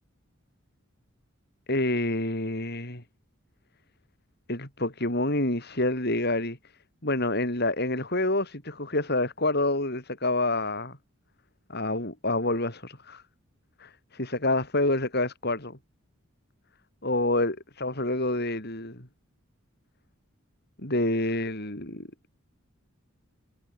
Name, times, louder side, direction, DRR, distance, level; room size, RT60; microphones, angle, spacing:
voice 1, 1.7-3.0 4.5-6.6 7.0-11.0 11.7-13.2 13.8-15.8 17.0-19.1 20.8-22.1, left 2 dB, 50° left, 7.7 m, -27 dB
head